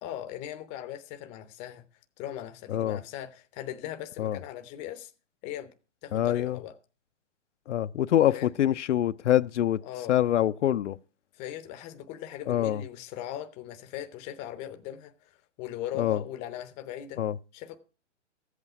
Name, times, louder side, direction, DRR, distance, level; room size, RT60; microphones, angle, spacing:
voice 1, 0.0-1.8 2.2-5.1 5.4-5.7 6.0-6.7 8.3-8.6 9.8-10.1 11.4-17.2 17.5-17.8, left 11 dB, 20° left, 0.7 m, -39 dB
voice 2, 2.7-3.0 4.2-4.4 6.1-6.6 7.7-9.8 10.1-11.0 12.5-12.8 15.9-16.2 17.2-17.4, left 12 dB, 70° left, 0.6 m, -25 dB
14.0 x 8.2 x 5.9 m
hypercardioid pair, 145°, 37 cm